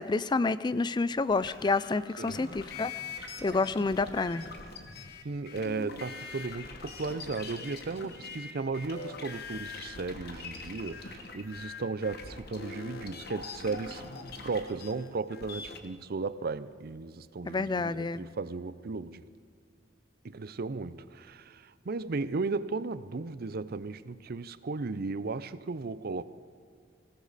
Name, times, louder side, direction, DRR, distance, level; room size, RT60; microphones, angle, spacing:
voice 1, 0.0-2.9 3.4-4.5 17.5-18.2, left 3 dB, 25° left, 0.4 m, -29 dB
sound 1, 1.3-15.8, left 4 dB, 60° left, 1.4 m, -43 dB
voice 2, 5.2-14.0 14.4-19.2 20.2-26.2, right 3 dB, 55° right, 0.6 m, -35 dB
20.0 x 17.0 x 4.1 m
head